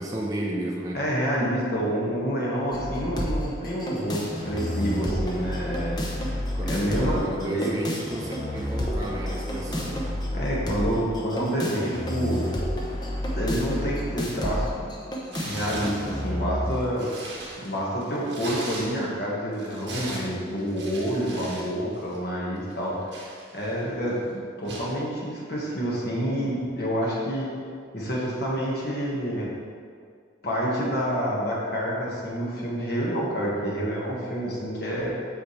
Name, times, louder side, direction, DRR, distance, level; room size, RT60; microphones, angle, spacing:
voice 1, 0.0-1.0 5.8-6.0 6.5-10.0, right 1 dB, 20° right, -3 dB, 0.6 m, -32 dB
voice 2, 0.9-6.4 6.6-7.7 10.3-12.5 13.3-14.9 15.4-17.1 17.6-23.2 23.5-27.5 27.9-29.5 30.4-35.1, equal, 55° left, -5 dB, 1.5 m, -28 dB
sound 1, 2.7-16.7, equal, 20° left, 0.7 m, -30 dB
Tearing, 15.3-16.1 16.6-19.2 19.5-21.7 21.9-22.2 22.7-23.8 24.6-24.9, right 2 dB, 70° right, 1.6 m, -39 dB
8.2 x 5.1 x 3.2 m, 2.1 s
head